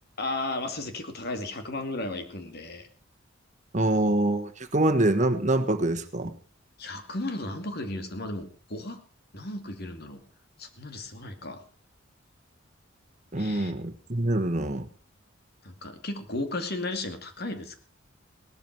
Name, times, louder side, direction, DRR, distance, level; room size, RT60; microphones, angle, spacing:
voice 1, 0.2-2.9 6.8-9.0 9.3-10.2 10.6-11.6 13.4-13.7 15.6-17.8, left 2 dB, 50° left, 7 dB, 2.4 m, -34 dB
voice 2, 3.7-6.3 13.3-14.8, right 1 dB, 35° right, 8 dB, 1.4 m, -25 dB
18.0 x 13.0 x 4.6 m, 0.36 s
head